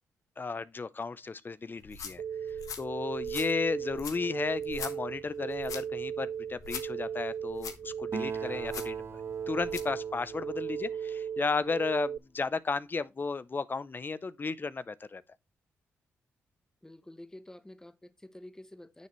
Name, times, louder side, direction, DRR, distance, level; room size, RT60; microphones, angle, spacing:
voice 1, 0.4-2.2 2.8-9.0 9.5-15.2, left 4 dB, 35° left, 0.6 m, -34 dB
sound 1, 1.8-10.0, left 7 dB, 75° left, 1.3 m, -45 dB
sound 2, 2.2-12.2, right 8 dB, 65° right, 0.4 m, -37 dB
Acoustic guitar, 8.1-11.9, right 4 dB, 45° right, 1.0 m, -44 dB
voice 2, 16.8-19.1, left 1 dB, 10° left, 1.0 m, -49 dB
9.4 x 7.1 x 3.1 m
supercardioid pair, 60°, 6 cm